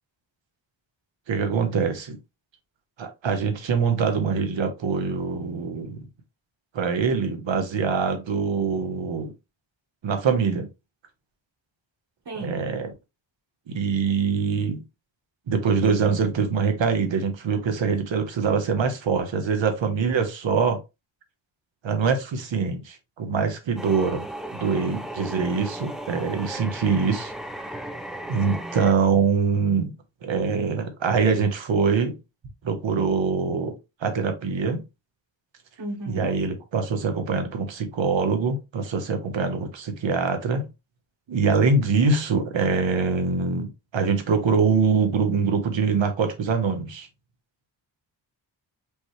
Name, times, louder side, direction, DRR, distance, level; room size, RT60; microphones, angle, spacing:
voice 1, 1.3-2.2 3.0-6.0 6.7-9.3 10.0-10.7 12.4-12.9 13.7-14.8 15.5-20.8 21.8-24.2 24.6-27.3 28.3-29.9 30.2-32.2 32.6-33.7 34.0-34.8 36.1-40.7 41.3-47.1, right 5 dB, 75° right, 1.2 m, -24 dB
voice 2, 12.3-12.6 35.8-36.3, right 2 dB, 60° right, 1.9 m, -33 dB
sound 1, 23.8-28.9, right 1 dB, ahead, 0.5 m, -36 dB
5.2 x 3.2 x 3.2 m
wide cardioid pair, 170°, 45 cm